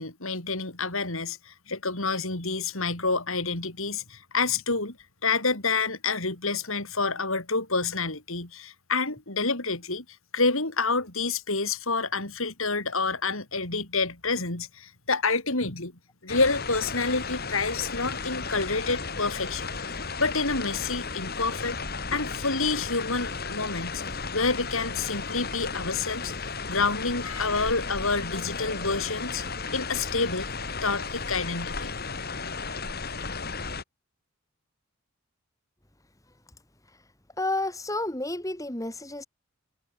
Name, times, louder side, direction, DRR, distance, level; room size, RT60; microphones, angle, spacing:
voice 1, 0.0-5.0 5.2-10.0 10.3-15.9 16.2-21.8 22.1-29.4 29.7-30.5 30.8-31.9, left 4 dB, 65° left, 4.3 m, -28 dB
sound 1, 16.3-33.8, left 4 dB, 45° left, 2.9 m, -34 dB
voice 2, 37.4-39.3, left 2 dB, 15° left, 2.3 m, -30 dB
head